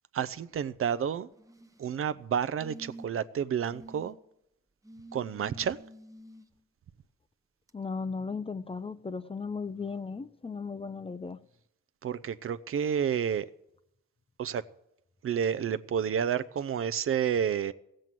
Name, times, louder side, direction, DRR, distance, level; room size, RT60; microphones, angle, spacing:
voice 1, 0.1-1.3 1.8-4.2 5.1-5.8 12.0-13.5 14.4-14.6 15.2-17.7, right 8 dB, 45° right, 15 dB, 0.6 m, -30 dB
sound 1, 1.3-1.9 2.6-3.3 3.7-4.1 4.8-6.4 7.7-7.8, right 2 dB, 10° right, 0.8 m, -49 dB
voice 2, 7.7-11.4, left 4 dB, 20° left, 14 dB, 0.5 m, -36 dB
15.5 x 7.7 x 7.5 m, 0.81 s
cardioid pair, 90°, 30 cm